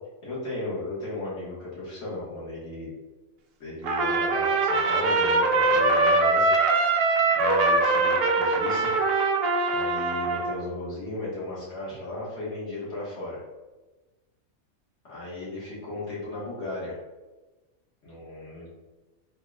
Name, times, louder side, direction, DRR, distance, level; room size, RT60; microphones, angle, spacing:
voice 1, 0.2-2.9 3.6-6.5 7.3-8.9 9.7-13.4 15.0-17.0 18.0-18.7, left 2 dB, 55° left, -9 dB, 1.9 m, -35 dB
Trumpet, 3.8-10.6, right 3 dB, 65° right, 0.6 m, -22 dB
3.9 x 3.7 x 2.4 m, 1.2 s
omnidirectional pair, 1.4 m